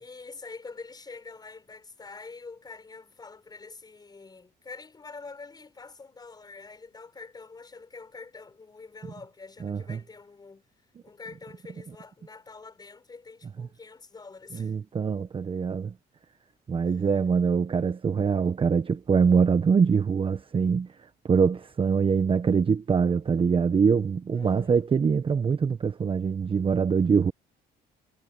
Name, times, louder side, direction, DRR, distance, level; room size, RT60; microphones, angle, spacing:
voice 1, 0.0-10.6 11.0-14.7 16.9-17.0 24.3-24.8, left 4 dB, 25° left, 7.2 m, -45 dB
voice 2, 9.6-10.0 13.6-13.7 14.5-15.9 16.7-20.9 21.2-27.3, right 6 dB, 30° right, 1.2 m, -24 dB
cardioid pair, 110°, 17 cm